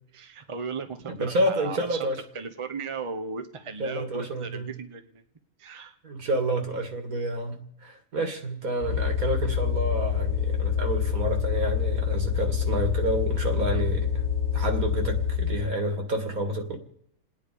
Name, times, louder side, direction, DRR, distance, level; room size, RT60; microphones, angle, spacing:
voice 1, 0.1-2.1 2.3-5.2 5.6-5.9, right 4 dB, 25° right, 7 dB, 0.9 m, -36 dB
voice 2, 1.2-2.2 3.8-4.8 6.0-14.2 14.5-16.8, right 1 dB, 75° right, 5 dB, 2.5 m, -29 dB
sound 1, 8.8-15.7, left 7 dB, 80° left, 1.5 m, -26 dB
29.0 x 9.7 x 5.0 m, 0.74 s
omnidirectional pair, 1.5 m